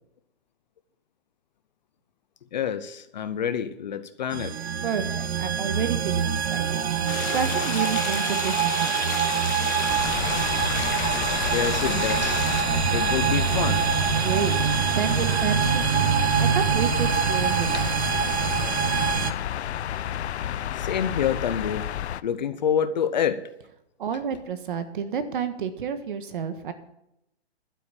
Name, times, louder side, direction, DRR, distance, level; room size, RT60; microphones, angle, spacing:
voice 1, 2.5-4.6 11.5-12.4 12.9-13.9 17.7-17.8 20.7-21.9 22.2-23.4, left 8 dB, 40° left, 12 dB, 0.7 m, -27 dB
sound 1, 4.3-19.3, right 8 dB, 75° right, 0.9 m, -25 dB
voice 2, 4.8-6.8 7.3-9.2 14.2-14.6 14.9-16.0 16.4-17.9 24.0-26.7, right 7 dB, 50° right, 10 dB, 1.5 m, -30 dB
sound 2, 7.1-12.6, left 8 dB, 15° left, 0.7 m, -33 dB
sound 3, 9.9-22.2, left 10 dB, 80° left, 0.6 m, -31 dB
12.0 x 8.2 x 7.0 m, 0.81 s
hypercardioid pair, 170°, 33 cm